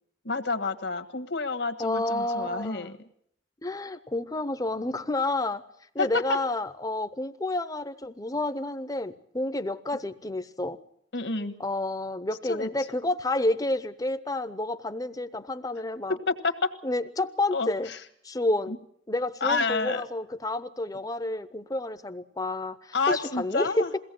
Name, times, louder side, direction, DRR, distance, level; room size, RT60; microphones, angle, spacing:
voice 1, 0.2-2.9 6.0-6.2 11.1-11.5 12.4-12.7 16.1-16.7 17.5-18.0 18.7-18.8 19.4-20.0 22.9-23.9, left 3 dB, 70° left, 8 dB, 1.5 m, -29 dB
voice 2, 1.8-3.0 3.6-5.6 5.9-10.8 11.6-16.2 16.8-17.9 18.2-18.8 19.1-23.9, left 2 dB, 20° left, 13 dB, 0.7 m, -30 dB
22.5 x 17.0 x 7.7 m, 0.71 s
head